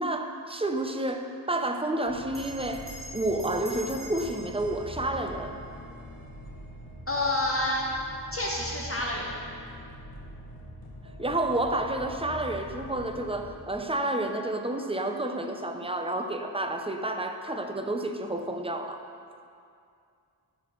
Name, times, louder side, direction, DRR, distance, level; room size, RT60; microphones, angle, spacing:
voice 1, 0.0-2.8 3.1-5.5 11.2-19.0, right 1 dB, 15° right, 5 dB, 0.4 m, -30 dB
sound 1, 2.1-13.5, equal, 80° left, 1.0 m, -44 dB
Bell, 2.3-7.2, right 1 dB, 5° left, 1.0 m, -46 dB
voice 2, 7.1-7.9 8.3-9.3, left 1 dB, 35° left, -3 dB, 0.7 m, -28 dB
11.0 x 4.1 x 3.1 m, 2.4 s
wide cardioid pair, 45°, 41 cm